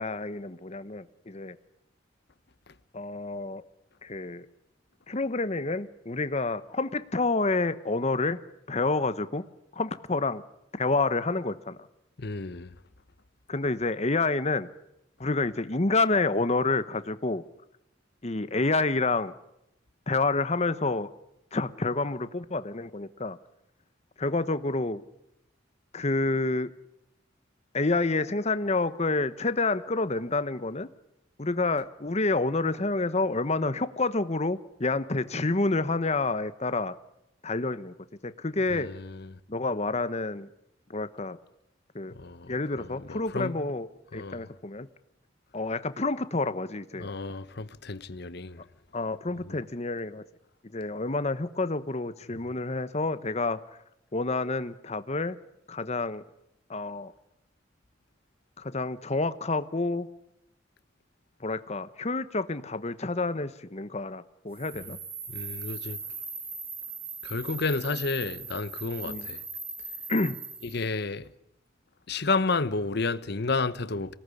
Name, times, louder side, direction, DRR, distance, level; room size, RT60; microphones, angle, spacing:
voice 1, 0.0-1.6 2.9-3.6 4.0-4.5 5.1-8.4 8.7-9.4 9.7-10.4 10.8-11.8 13.5-14.7 15.2-17.4 18.2-19.3 20.1-21.1 21.5-23.4 24.2-25.0 25.9-26.7 27.7-30.9 31.4-36.9 37.4-37.9 38.2-38.9 39.5-40.5 40.9-41.4 41.9-42.1 42.5-43.9 44.1-44.9 45.5-47.1 48.9-50.2 50.7-53.6 54.1-55.4 55.7-56.2 56.7-57.1 58.6-60.1 61.4-65.0 69.0-69.3 70.1-70.4, left 3 dB, 35° left, 1.1 m, -28 dB
voice 2, 12.2-12.7 38.7-39.4 42.1-43.6 44.1-44.5 47.0-48.6 49.4-49.6 64.8-64.9 65.3-66.0 67.2-69.4 70.6-71.3 72.1-74.1, left 3 dB, 60° left, 1.0 m, -31 dB
sound 1, 64.5-70.8, right 4 dB, 30° right, 4.1 m, -39 dB
25.0 x 18.5 x 9.9 m
head